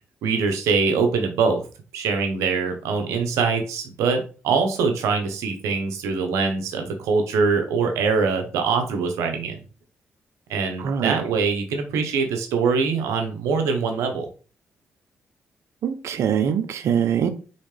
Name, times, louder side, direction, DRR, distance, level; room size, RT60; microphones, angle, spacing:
voice 1, 0.2-1.6 1.9-9.6 10.5-14.3, right 5 dB, 85° right, 5 dB, 1.0 m, -23 dB
voice 2, 10.8-11.2 15.8-17.3, right 8 dB, 70° right, 10 dB, 0.6 m, -23 dB
4.2 x 3.6 x 3.3 m, 0.36 s
supercardioid pair, 60°, 5 cm